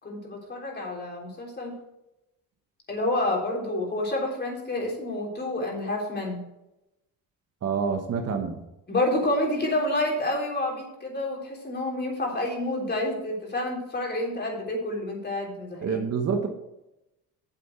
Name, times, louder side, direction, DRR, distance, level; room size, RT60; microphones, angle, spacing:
voice 1, 0.0-1.8 2.9-6.4 8.9-16.0, left 1 dB, 30° left, -1 dB, 3.6 m, -29 dB
voice 2, 7.6-8.6 15.8-16.5, right 6 dB, 45° right, 5 dB, 1.2 m, -27 dB
8.6 x 7.7 x 4.6 m, 0.92 s
cardioid pair, 110°, 35 cm